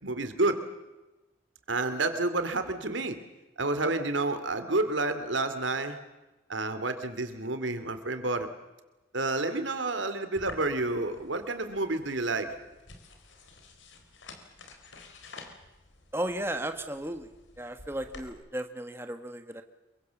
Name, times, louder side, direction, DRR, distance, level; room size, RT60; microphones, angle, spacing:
voice 1, 0.0-0.6 1.7-3.2 3.6-6.0 6.5-8.5 9.1-12.5, right 2 dB, 85° right, 10 dB, 2.8 m, -29 dB
sound 1, 10.4-18.3, left 3 dB, 85° left, 4.0 m, -50 dB
voice 2, 16.1-17.3 17.6-19.6, right 1 dB, 15° right, 7 dB, 1.4 m, -35 dB
27.0 x 23.5 x 7.2 m, 1.1 s
head